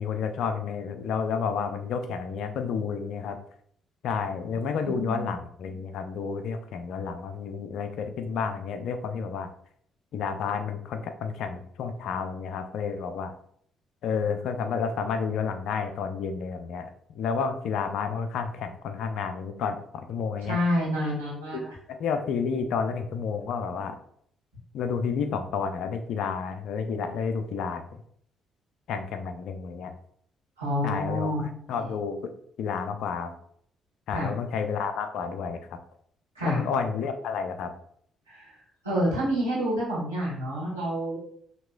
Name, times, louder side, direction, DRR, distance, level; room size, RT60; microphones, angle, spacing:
voice 1, 0.0-3.4 4.0-9.5 10.1-13.3 14.0-20.6 21.5-24.0 24.7-28.0 28.9-29.9 30.8-32.3 32.6-33.3 34.1-35.8 36.4-37.7, left 6 dB, 60° left, 7 dB, 0.5 m, -30 dB
voice 2, 4.8-5.3 20.4-21.7 30.6-31.4 31.8-31.9 34.1-34.3 36.3-36.6 38.3-38.5 38.8-41.2, equal, 90° right, -9 dB, 1.5 m, -28 dB
5.9 x 2.9 x 2.2 m, 0.65 s
figure-of-eight pair, 45°, 0 cm